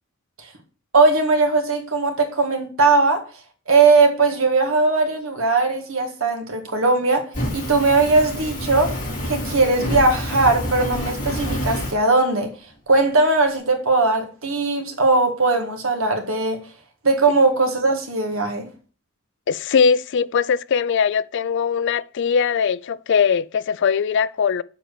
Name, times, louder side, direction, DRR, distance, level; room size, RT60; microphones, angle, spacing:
voice 1, 0.9-3.2 3.7-9.0 9.2-12.5 12.9-16.6 17.0-18.7, right 3 dB, 70° right, 1.8 m, -19 dB
Fire, 7.3-11.9, left 1 dB, 40° left, 4.3 m, -27 dB
voice 2, 19.5-24.6, left 6 dB, 60° left, 0.4 m, -20 dB
7.2 x 4.4 x 6.7 m
head